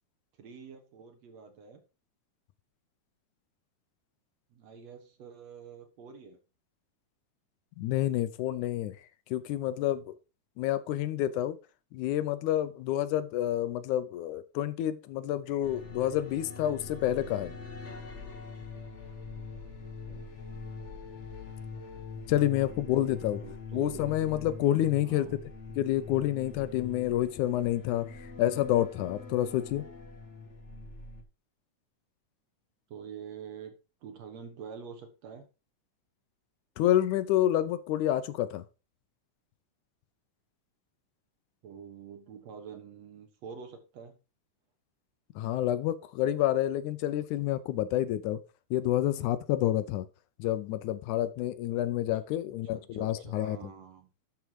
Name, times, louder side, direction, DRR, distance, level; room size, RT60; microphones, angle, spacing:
voice 1, 0.4-1.8 4.5-6.4 19.8-20.2 22.4-24.2 25.0-25.4 32.9-33.7 34.0-35.4 41.6-44.2 52.7-54.1, right 6 dB, 60° right, 2.4 m, -46 dB
voice 2, 7.8-9.0 9.3-10.2 10.6-11.6 11.9-17.5 22.3-23.4 23.7-25.3 25.8-29.8 36.8-38.6 45.4-48.4 48.7-50.1 50.4-53.6, left 13 dB, 80° left, 2.1 m, -28 dB
sound 1, 15.6-31.2, left 4 dB, 45° left, 0.9 m, -43 dB
12.0 x 4.7 x 4.7 m
omnidirectional pair, 3.6 m